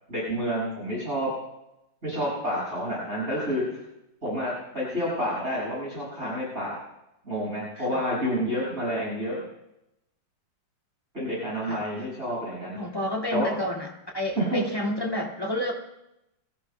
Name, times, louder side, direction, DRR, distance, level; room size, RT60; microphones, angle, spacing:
voice 1, 0.1-1.3 2.0-3.6 4.2-6.8 7.2-9.4 11.1-12.8 13.3-13.6 14.4-14.6, equal, 35° right, -8 dB, 6.6 m, -29 dB
voice 2, 12.8-13.9 14.1-15.7, left 1 dB, 15° left, -2 dB, 1.9 m, -30 dB
25.0 x 14.5 x 2.2 m, 0.88 s
omnidirectional pair, 2.1 m